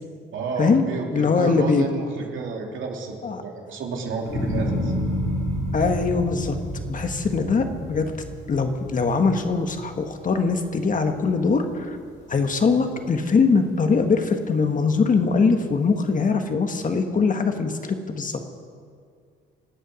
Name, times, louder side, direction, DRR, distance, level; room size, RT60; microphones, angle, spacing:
voice 1, 0.3-5.0, right 4 dB, 75° right, 0 dB, 2.9 m, -31 dB
voice 2, 1.1-1.9 3.2-3.4 5.7-6.6 6.9-8.1 8.5-12.0 12.3-18.4, left 4 dB, 40° left, 5 dB, 1.7 m, -22 dB
sound 1, 4.2-10.6 11.0-11.6, equal, 75° left, 4.3 m, -29 dB
24.5 x 9.1 x 6.4 m, 2.1 s
cardioid pair, 90°, 20 cm